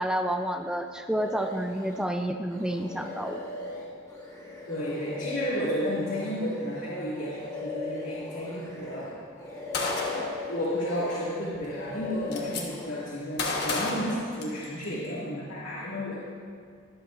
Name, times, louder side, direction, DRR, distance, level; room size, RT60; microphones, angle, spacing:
voice 1, 0.0-3.5, equal, 5° right, 5 dB, 0.4 m, -29 dB
sound 1, 1.1-2.1 2.5-9.1 9.4-11.4 11.6-13.1, left 3 dB, 20° left, 2.5 m, -39 dB
voice 2, 4.6-9.2 10.4-16.2, equal, 75° left, -9 dB, 2.3 m, -32 dB
Gunshot gunfire, 9.7-10.4 11.5-11.6 11.9-12.6 13.4-14.9, left 3 dB, 50° left, 1.3 m, -30 dB
23.0 x 8.1 x 2.6 m, 2.2 s
head